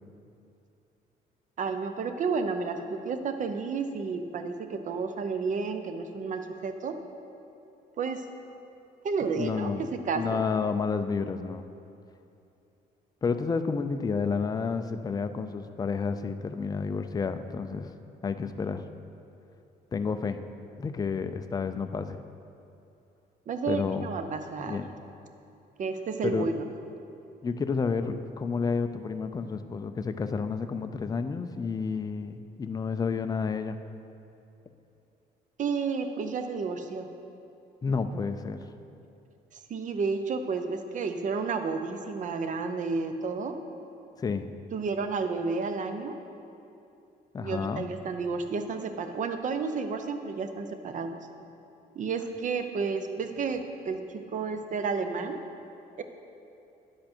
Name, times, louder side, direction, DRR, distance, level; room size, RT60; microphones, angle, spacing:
voice 1, 1.6-7.0 8.0-8.2 9.0-10.4 23.5-24.8 25.8-26.6 35.6-37.1 39.7-43.5 44.7-46.2 47.4-51.2 52.0-54.0 54.3-55.4 56.0-56.1, right 4 dB, 50° right, 7 dB, 0.6 m, -31 dB
voice 2, 9.3-9.9 10.1-11.6 13.2-17.9 18.2-18.8 19.9-20.4 20.8-22.2 23.7-24.1 24.6-24.9 26.2-26.5 27.4-33.8 37.8-38.7 44.2-44.5 47.3-47.9, left 5 dB, 20° left, 9 dB, 0.4 m, -30 dB
10.5 x 7.6 x 4.4 m, 2.7 s
cardioid pair, 125°, 17 cm